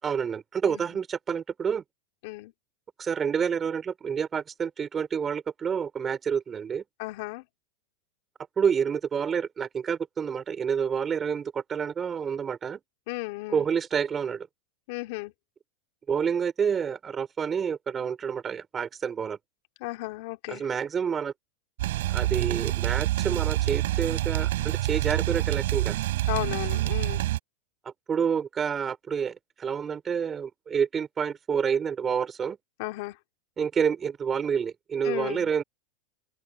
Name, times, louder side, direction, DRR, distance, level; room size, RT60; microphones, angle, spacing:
voice 1, 0.0-1.8 3.0-6.8 8.6-12.8 13.5-14.5 16.1-19.4 20.5-21.3 22.1-26.0 27.8-32.6 33.6-35.6, right 7 dB, 25° right, 4.4 m, -28 dB
voice 2, 7.0-7.4 13.1-13.6 14.9-15.3 19.8-20.6 26.3-27.2 32.8-33.2 35.0-35.5, left 22 dB, 60° left, 2.5 m, -34 dB
sound 1, 21.8-27.4, right 15 dB, 75° right, 5.0 m, -27 dB
open air
supercardioid pair, 130°, 0 cm